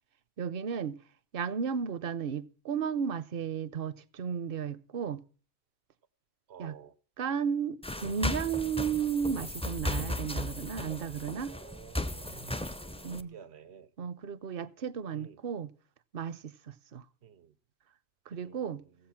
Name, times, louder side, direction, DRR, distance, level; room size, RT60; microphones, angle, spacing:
voice 1, 0.4-1.0 1.3-5.2 6.6-6.8 7.2-11.5 13.0-13.4 14.0-15.7 16.1-17.0 18.3-18.8, right 7 dB, 65° right, 0.9 m, -34 dB
voice 2, 6.5-6.9 11.3-13.9 15.1-15.4 17.2-17.5 18.4-18.6, right 7 dB, 90° right, 1.1 m, -52 dB
sound 1, 7.8-13.2, left 1 dB, 10° left, 0.5 m, -36 dB
16.0 x 8.0 x 5.8 m
omnidirectional pair, 1.1 m